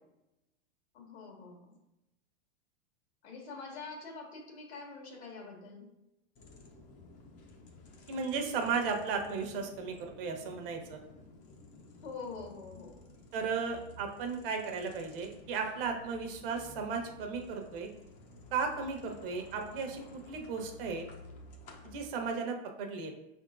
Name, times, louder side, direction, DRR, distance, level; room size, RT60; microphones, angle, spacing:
voice 1, 0.9-1.8 3.2-5.9 12.0-13.0, left 4 dB, 70° left, 0 dB, 1.5 m, -45 dB
sound 1, 6.4-22.1, left 2 dB, 25° left, 0.6 m, -54 dB
voice 2, 8.1-11.0 13.3-17.9 18.5-20.0 20.3-21.0 21.9-23.1, right 5 dB, 55° right, 4 dB, 1.0 m, -35 dB
5.1 x 3.6 x 2.5 m, 0.92 s
hypercardioid pair, 140°, 34 cm